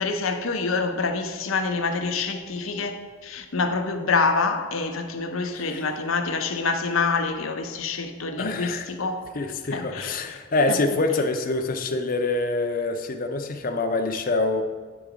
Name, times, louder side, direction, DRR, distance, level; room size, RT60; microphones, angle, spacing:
voice 1, 0.0-9.3 9.7-10.2, left 4 dB, 80° left, 0.7 m, -26 dB
voice 2, 5.5-5.9 8.4-8.9 9.3-14.6, left 2 dB, 45° left, 0.6 m, -25 dB
9.1 x 3.9 x 4.9 m
head